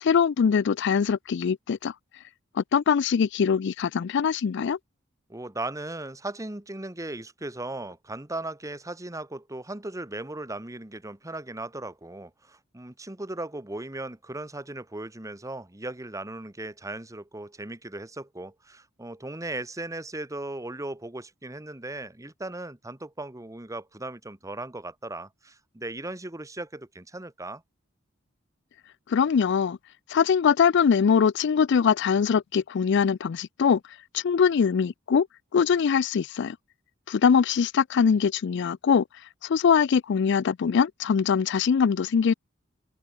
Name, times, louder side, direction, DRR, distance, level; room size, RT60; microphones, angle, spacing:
voice 1, 0.0-1.9 2.6-4.8 29.1-29.8 30.1-33.8 34.1-35.3 35.5-36.6 37.1-39.0 39.4-42.3, left 6 dB, 60° left, 0.4 m, -22 dB
voice 2, 5.3-27.6, right 2 dB, 15° right, 1.3 m, -37 dB
head